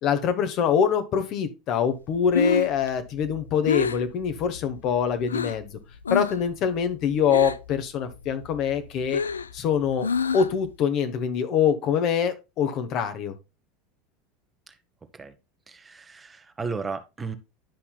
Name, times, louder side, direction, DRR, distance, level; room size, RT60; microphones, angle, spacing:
voice 1, 0.0-5.7 6.1-9.2 9.5-10.1 10.3-13.3, left 7 dB, 45° left, 1.2 m, -24 dB
Breathing, 2.1-5.7 6.0-6.5 6.8-7.8 8.1-10.7, left 5 dB, 80° left, 0.3 m, -28 dB
voice 2, 15.7-17.4, right 4 dB, 20° right, 1.0 m, -34 dB
10.5 x 5.7 x 2.3 m
figure-of-eight pair, 75°, 0 cm